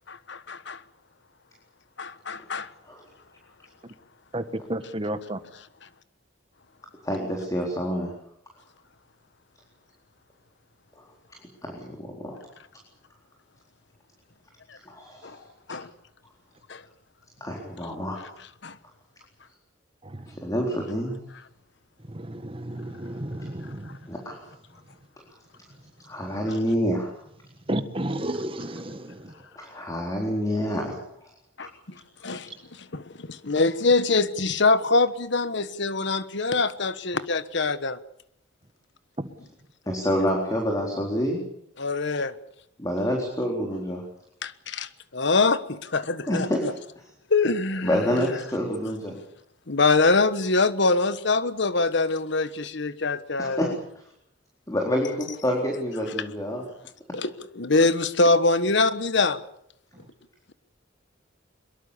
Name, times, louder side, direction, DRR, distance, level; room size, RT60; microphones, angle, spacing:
voice 1, 0.1-0.8 2.0-2.7 15.2-15.4 15.7-15.9 16.7-16.8 18.6-18.8 31.6-32.0 32.2-38.0 41.8-42.3 44.4-45.6 45.9-46.0 46.3-46.5 47.3-48.2 49.7-53.7 57.1-59.4, left 3 dB, 65° left, 13 dB, 1.4 m, -24 dB
voice 2, 4.3-5.4 20.0-20.4 22.1-23.9 27.7-29.3 32.3-32.4 39.2-39.3 59.9-60.0, right 1 dB, 30° right, 10 dB, 1.6 m, -32 dB
voice 3, 7.0-8.1 11.0-11.1 11.6-12.4 14.9-15.3 17.4-18.2 20.3-21.2 24.1-24.4 26.0-27.1 29.6-31.3 39.9-41.4 42.8-44.0 46.3-46.6 47.8-49.1 53.4-53.7 54.7-56.6, equal, 20° left, 0 dB, 4.0 m, -27 dB
23.0 x 22.5 x 7.1 m, 0.71 s
head